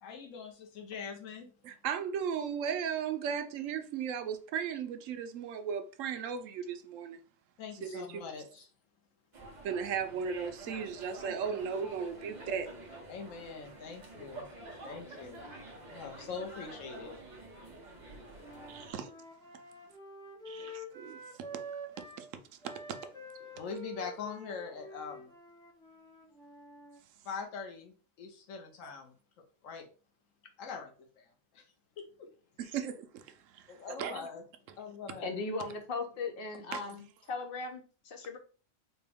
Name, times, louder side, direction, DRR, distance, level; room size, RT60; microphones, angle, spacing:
voice 1, 0.0-1.5 7.6-8.7 13.1-14.5 14.8-15.5 15.9-17.1 23.6-25.3 27.2-29.1 29.6-29.9 30.6-31.7 32.0-32.3 32.6-32.8 33.7-34.4 34.7-35.3 36.5-36.6, left 5 dB, 85° left, 1.1 m, -43 dB
voice 2, 1.6-7.2 7.8-8.2 9.6-12.8 18.7-19.1 20.5-21.2 22.2-22.3 28.8-28.9 32.6-33.2 33.5-33.7 34.0-34.3 36.7-36.8, right 7 dB, 85° right, 1.0 m, -36 dB
sound 1, 9.3-18.9, right 2 dB, 40° right, 1.0 m, -48 dB
Wind instrument woodwind instrument, 18.4-22.3 22.6-27.0, right 1 dB, 5° left, 0.6 m, -47 dB
voice 3, 35.2-38.4, left 3 dB, 55° left, 0.9 m, -38 dB
4.2 x 2.2 x 3.4 m
omnidirectional pair, 1.3 m